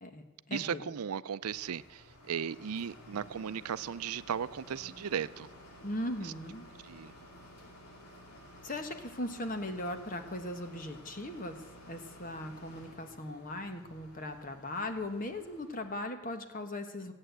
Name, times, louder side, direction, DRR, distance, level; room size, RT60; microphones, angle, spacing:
voice 1, 0.0-0.9 5.8-6.7 8.6-11.6 11.9-17.1, left 1 dB, 35° left, 1.2 m, -38 dB
voice 2, 0.5-5.5 6.8-7.1, right 7 dB, 85° right, 0.5 m, -36 dB
sound 1, 1.4-16.1, equal, 85° left, 2.7 m, -54 dB
16.0 x 8.8 x 8.0 m
head